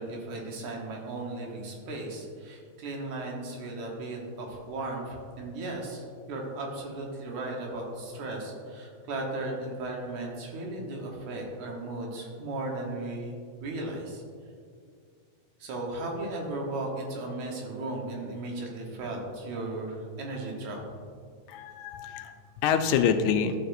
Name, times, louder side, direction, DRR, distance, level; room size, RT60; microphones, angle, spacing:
voice 1, 0.0-14.2 15.6-20.8, right 2 dB, 75° right, 0 dB, 2.5 m, -36 dB
voice 2, 21.5-23.6, left 7 dB, 80° left, 7 dB, 1.9 m, -26 dB
12.0 x 6.7 x 2.6 m, 2.1 s
omnidirectional pair, 3.4 m